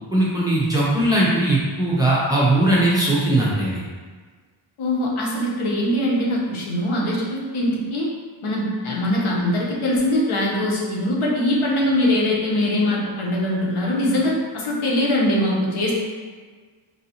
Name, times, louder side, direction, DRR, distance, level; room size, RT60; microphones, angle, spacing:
voice 1, 0.1-3.8, right 1 dB, 10° right, -7 dB, 0.6 m, -19 dB
voice 2, 4.8-8.1 8.4-15.9, left 1 dB, 80° left, -3 dB, 0.9 m, -22 dB
4.7 x 2.6 x 2.8 m, 1.5 s
wide cardioid pair, 175°, 50 cm